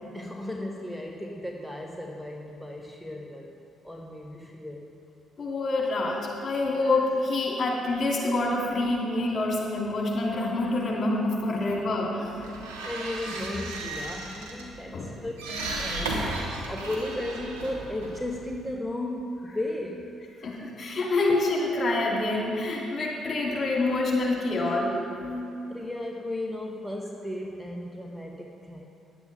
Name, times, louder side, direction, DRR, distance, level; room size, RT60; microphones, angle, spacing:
voice 1, 0.1-3.6 3.8-4.9 11.6-12.1 12.4-15.3 15.8-16.2 16.7-20.1 24.6-24.8 25.2-28.9, left 1 dB, ahead, 1 dB, 1.0 m, -35 dB
voice 2, 5.4-12.5 14.9-15.1 16.6-16.7 20.4-24.9, left 2 dB, 45° left, -3 dB, 2.6 m, -27 dB
sound 1, 12.2-18.7, right 2 dB, 85° right, 1.3 m, -35 dB
10.5 x 8.2 x 5.2 m, 2.7 s
hypercardioid pair, 45°, 0 cm